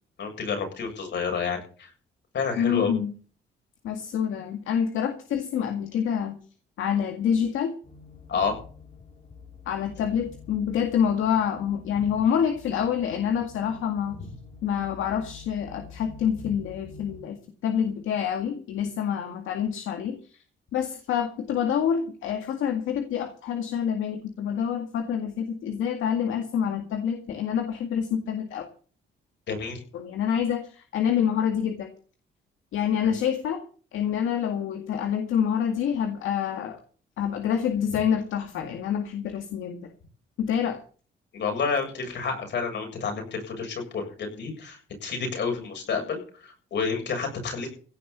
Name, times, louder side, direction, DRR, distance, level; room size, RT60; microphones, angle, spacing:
voice 1, 0.2-1.9 2.3-2.9 8.3-8.6 29.5-29.8 33.0-33.1 41.3-47.7, left 5 dB, 60° left, 4 dB, 7.4 m, -29 dB
voice 2, 2.6-3.1 3.8-6.4 6.8-7.8 9.7-14.2 14.6-20.4 20.7-28.7 29.9-31.9 32.7-33.6 33.9-36.8 37.2-39.9 40.4-40.8, left 8 dB, 80° left, 6 dB, 2.0 m, -27 dB
sound 1, 7.8-17.2, left 5 dB, 35° left, 2.9 m, -47 dB
16.5 x 6.9 x 8.4 m, 0.41 s
cardioid pair, 90°, 20 cm